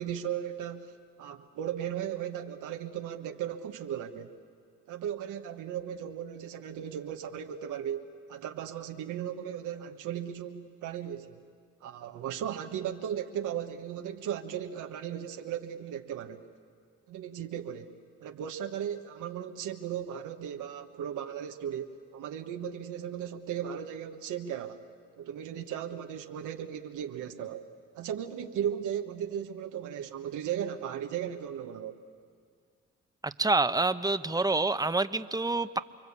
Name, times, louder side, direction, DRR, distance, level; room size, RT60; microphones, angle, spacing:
voice 1, 0.0-4.3 4.9-11.4 11.8-16.4 17.1-24.8 25.2-27.7 27.9-32.0, right 9 dB, 85° right, 5 dB, 1.4 m, -36 dB
voice 2, 33.2-35.8, right 3 dB, 10° right, 11 dB, 1.0 m, -27 dB
29.0 x 23.0 x 8.5 m, 2.1 s
supercardioid pair, 60°, 30 cm